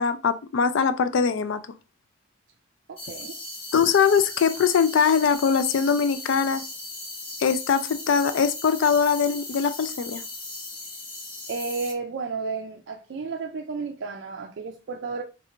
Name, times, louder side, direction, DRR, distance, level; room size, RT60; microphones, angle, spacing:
voice 1, 0.0-1.6 3.7-6.6 7.4-10.2, left 6 dB, 65° left, 0.3 m, -22 dB
voice 2, 2.9-3.3 11.5-15.2, right 4 dB, 60° right, 0.4 m, -32 dB
sound 1, 3.0-11.9, left 2 dB, 25° left, 0.6 m, -38 dB
3.3 x 2.5 x 2.8 m
head